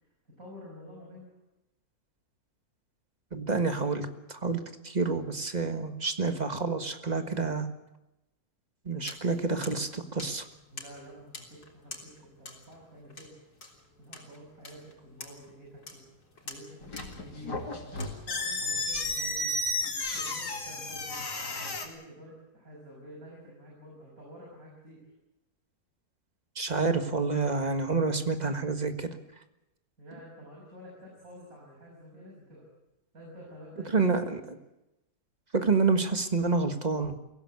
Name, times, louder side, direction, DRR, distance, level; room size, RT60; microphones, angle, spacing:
voice 1, 0.4-1.3 10.7-13.3 14.0-16.0 16.4-19.5 20.1-25.1 30.0-32.7 33.1-34.4, equal, 55° right, -3 dB, 7.0 m, -49 dB
voice 2, 3.3-7.7 8.9-10.4 26.6-29.1 33.9-34.6 35.5-37.1, right 4 dB, 25° right, 7 dB, 1.6 m, -28 dB
sound 1, 9.1-18.1, left 3 dB, 70° left, 4.1 m, -49 dB
sound 2, 16.8-21.9, left 2 dB, 85° left, 3.2 m, -33 dB
23.5 x 16.5 x 8.4 m, 0.95 s
omnidirectional pair, 1.7 m